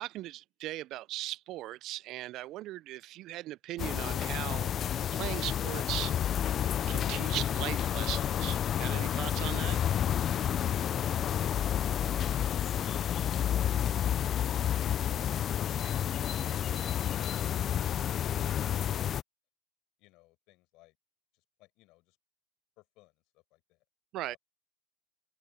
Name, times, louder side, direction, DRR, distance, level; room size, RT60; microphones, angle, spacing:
voice 1, 0.0-4.7 5.1-6.1 6.9-9.8 24.1-24.4, right 16 dB, 45° right, 0.4 m, -38 dB
sound 1, 3.8-19.2, left 10 dB, 30° left, 0.4 m, -30 dB
voice 2, 20.0-21.0 21.3-22.2 22.8-23.8 24.1-24.4, left 21 dB, 55° left, 6.5 m, -62 dB
open air
supercardioid pair, 120°, 0 cm